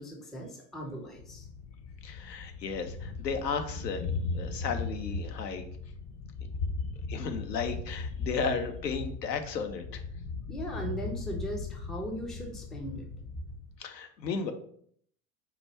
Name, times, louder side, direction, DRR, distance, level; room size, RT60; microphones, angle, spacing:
voice 1, 0.0-1.4 10.5-13.0, equal, ahead, 0 dB, 0.3 m, -38 dB
Thunder, 1.1-13.8, left 4 dB, 50° left, 1.0 m, -38 dB
voice 2, 2.0-4.0 4.3-5.6 7.1-10.0 13.8-14.5, left 5 dB, 85° left, 7 dB, 0.7 m, -34 dB
4.0 x 2.3 x 4.3 m, 0.62 s
figure-of-eight pair, 80°, 48 cm